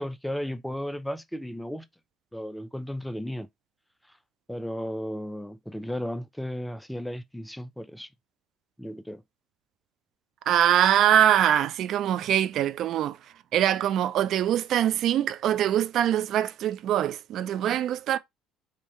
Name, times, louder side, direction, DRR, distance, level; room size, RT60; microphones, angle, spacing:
voice 1, 0.0-1.9 2.3-3.5 4.5-8.1 8.8-9.2 17.6-17.8, equal, 5° left, 0.4 m, -34 dB
voice 2, 10.5-18.2, right 11 dB, 60° right, 0.3 m, -23 dB
3.6 x 2.7 x 3.0 m
supercardioid pair, 80°, 0 cm